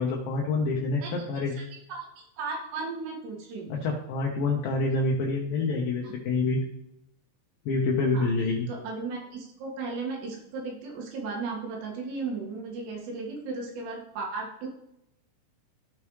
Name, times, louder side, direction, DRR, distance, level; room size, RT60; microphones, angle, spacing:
voice 1, 0.0-1.5 3.7-6.6 7.7-8.7, left 3 dB, 70° left, -1 dB, 2.6 m, -27 dB
voice 2, 2.4-3.7 6.0-6.1 8.1-8.3 8.7-14.7, right 4 dB, 80° right, -1 dB, 4.0 m, -35 dB
15.0 x 5.4 x 3.2 m, 0.82 s
omnidirectional pair, 4.8 m